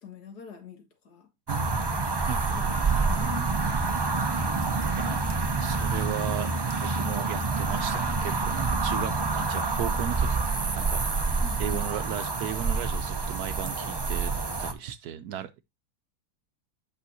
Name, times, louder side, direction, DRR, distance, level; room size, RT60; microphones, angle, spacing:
voice 1, 0.0-1.3 2.5-3.6 11.4-11.9, left 6 dB, 75° left, 2.1 m, -44 dB
sound 1, 1.5-14.7, right 4 dB, 35° right, 0.4 m, -27 dB
voice 2, 1.5-2.6 5.0-5.2 5.6-6.5 6.8-14.3 14.6-15.6, right 10 dB, 75° right, 1.1 m, -36 dB
8.5 x 6.2 x 2.6 m
omnidirectional pair, 1.7 m